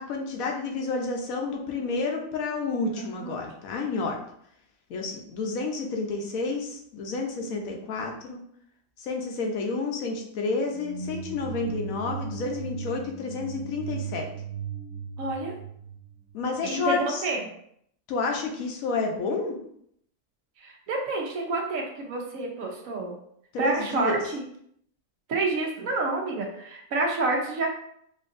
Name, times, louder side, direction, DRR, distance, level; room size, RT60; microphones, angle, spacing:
voice 1, 0.0-4.2 4.9-8.4 9.0-14.3 16.3-17.2 18.1-19.6 23.5-24.2, left 3 dB, 80° left, 2 dB, 1.1 m, -30 dB
voice 2, 2.9-3.3 7.5-7.6 15.2-15.5 16.6-17.4 20.6-23.2 23.6-24.4 25.3-27.7, right 2 dB, 75° right, -1 dB, 1.2 m, -29 dB
sound 1, 10.6-16.6, right 5 dB, 35° right, 0.9 m, -37 dB
4.4 x 2.7 x 2.5 m, 0.69 s
omnidirectional pair, 1.4 m